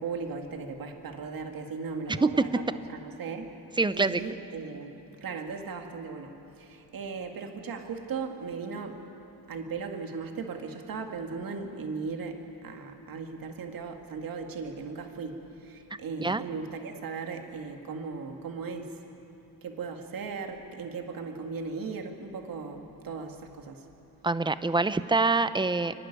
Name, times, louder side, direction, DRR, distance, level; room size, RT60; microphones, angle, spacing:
voice 1, 0.0-3.5 3.9-4.9 5.2-9.0 9.5-19.0 19.6-23.9, right 4 dB, 60° right, 3 dB, 2.2 m, -37 dB
voice 2, 3.8-4.2 16.2-16.4 24.2-25.9, right 3 dB, 10° right, 13 dB, 0.7 m, -25 dB
30.0 x 12.0 x 10.0 m, 2.8 s
cardioid pair, 125°, 39 cm